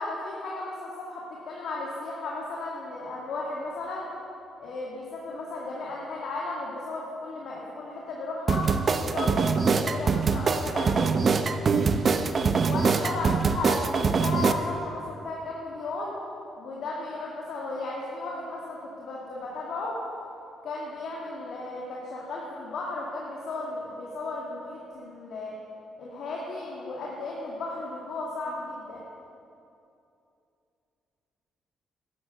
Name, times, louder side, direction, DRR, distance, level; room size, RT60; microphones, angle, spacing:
voice 1, 0.0-4.1 4.6-8.7 9.0-11.1 12.6-16.2 16.6-20.0 20.6-25.6 26.0-29.0, left 2 dB, 70° left, -4 dB, 2.2 m, -35 dB
sound 1, 8.5-14.5, right 5 dB, 45° right, 0.8 m, -24 dB
12.5 x 11.0 x 6.8 m, 2.7 s
cardioid pair, 90°, 0 cm